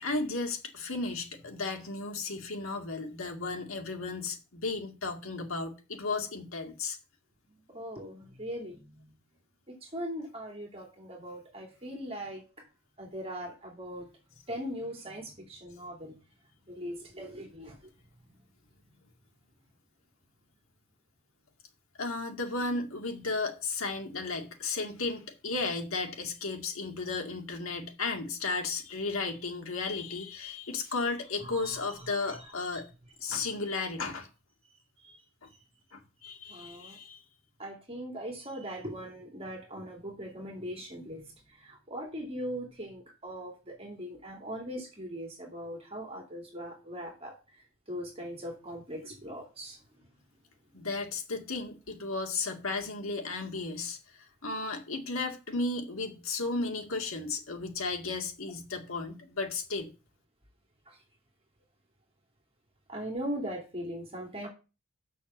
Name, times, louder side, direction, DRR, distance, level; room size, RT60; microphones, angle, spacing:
voice 1, 0.0-7.0 22.0-32.9 33.2-34.3 35.4-35.5 35.9-37.2 50.7-54.0 54.4-59.9, left 3 dB, 75° left, 2.2 m, -34 dB
voice 2, 7.7-9.1 9.7-12.4 13.0-14.1 14.5-16.2 16.7-17.9 31.4-31.8 32.2-32.4 35.1-35.2 36.5-37.0 37.6-41.2 41.6-47.3 47.9-49.8 60.9-61.0 62.9-64.5, equal, 30° right, 2.6 m, -40 dB
7.0 x 6.3 x 7.2 m
head